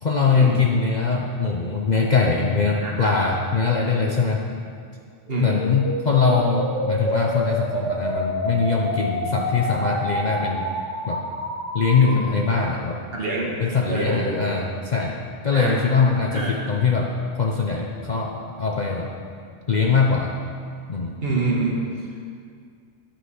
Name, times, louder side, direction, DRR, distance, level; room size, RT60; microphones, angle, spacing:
voice 1, 0.0-4.4 5.4-10.7 11.1-11.2 11.7-13.0 13.6-17.1 17.4-19.1 19.7-20.3 20.9-21.1, left 4 dB, 45° left, -1 dB, 0.7 m, -22 dB
voice 2, 2.8-3.1 5.3-5.5 12.0-12.2 12.5-12.6 13.1-13.6 13.9-14.4 15.5-15.8 16.3-16.5 21.2-21.7, right 3 dB, 50° right, -3 dB, 1.8 m, -26 dB
sound 1, 5.3-12.3, equal, 70° right, 2.2 m, -28 dB
9.7 x 5.9 x 6.4 m, 2.2 s
omnidirectional pair, 1.3 m